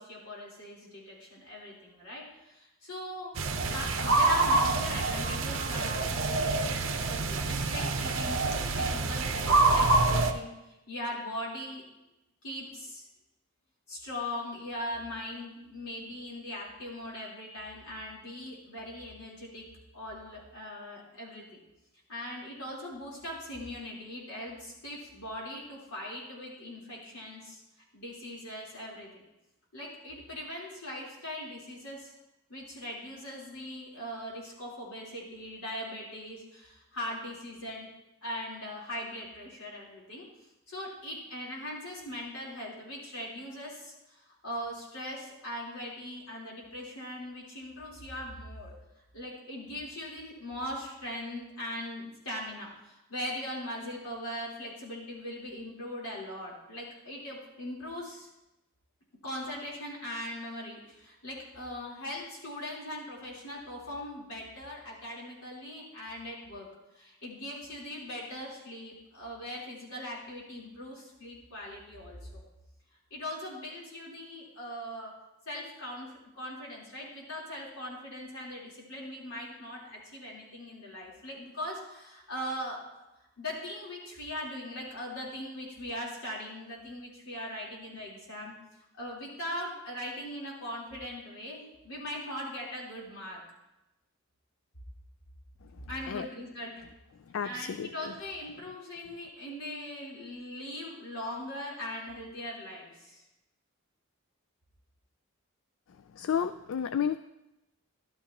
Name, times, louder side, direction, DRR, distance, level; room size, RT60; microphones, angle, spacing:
voice 1, 0.0-11.8 12.4-13.1 13.9-19.7 19.9-21.4 22.1-27.6 27.9-29.2 29.7-32.1 32.5-37.9 38.2-40.2 40.7-48.7 49.1-58.3 59.2-66.7 66.9-72.4 73.1-75.1 75.5-83.0 83.4-88.5 89.0-93.4 95.9-96.8 97.4-103.2, left 1 dB, 85° left, -4 dB, 3.8 m, -40 dB
sound 1, 3.4-10.3, right 3 dB, 60° right, 0.8 m, -27 dB
voice 2, 97.3-97.9 106.2-107.2, left 8 dB, 65° left, 12 dB, 0.3 m, -31 dB
13.5 x 12.0 x 3.0 m, 0.95 s
head